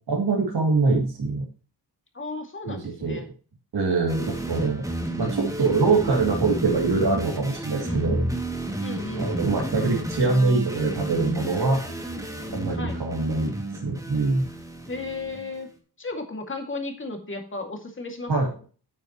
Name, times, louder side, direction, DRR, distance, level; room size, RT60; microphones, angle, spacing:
voice 1, 0.1-1.5 2.7-3.2 3.7-4.8 5.2-8.2 9.2-11.8 12.5-14.4 18.3-18.5, right 3 dB, 75° right, -2 dB, 2.6 m, -24 dB
voice 2, 2.1-3.3 7.8-8.1 8.8-9.6 12.8-13.0 14.9-15.7 16.0-18.3, left 3 dB, 30° left, 4 dB, 2.2 m, -34 dB
sound 1, 4.1-15.6, right 1 dB, 10° right, 2.2 m, -31 dB
9.3 x 8.8 x 3.0 m, 0.38 s
wide cardioid pair, 135°, 40 cm